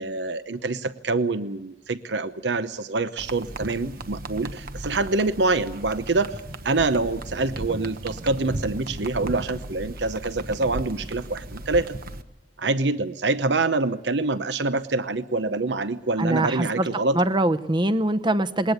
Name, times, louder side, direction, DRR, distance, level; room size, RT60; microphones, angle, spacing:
voice 1, 0.0-6.3 6.6-12.0 12.6-17.2, right 3 dB, 80° right, 12 dB, 0.9 m, -25 dB
sound 1, 3.2-12.2, right 1 dB, 55° right, 1.2 m, -36 dB
voice 2, 16.2-16.9 17.1-18.7, right 1 dB, 25° right, 14 dB, 0.8 m, -23 dB
21.0 x 19.0 x 8.2 m, 0.94 s
head